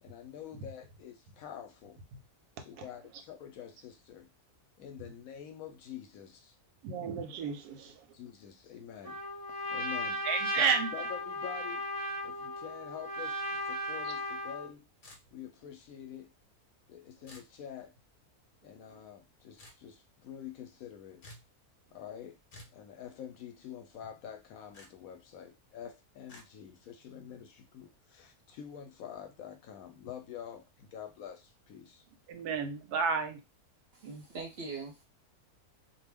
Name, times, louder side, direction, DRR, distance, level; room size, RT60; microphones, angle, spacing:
voice 1, 0.0-2.0 2.6-4.3 4.8-6.6 8.1-9.2 9.5-10.3 10.6-11.9 12.2-14.8 15.3-16.3 16.9-17.9 18.6-21.2 21.9-22.4 22.7-32.1 32.5-32.6, left 9 dB, 70° left, 0.9 m, -47 dB
voice 2, 6.8-8.1 10.2-10.9 32.3-33.4, right 6 dB, 85° right, 1.1 m, -31 dB
Trumpet, 9.0-14.7, equal, 25° right, 0.4 m, -36 dB
sound 1, 15.0-15.6 17.3-17.5 19.6-19.8 21.2-21.5 22.5-22.8 24.7-24.9 26.3-26.5, left 1 dB, 45° left, 0.7 m, -52 dB
voice 3, 33.9-35.0, right 4 dB, 55° right, 0.7 m, -42 dB
2.5 x 2.2 x 3.4 m
omnidirectional pair, 1.6 m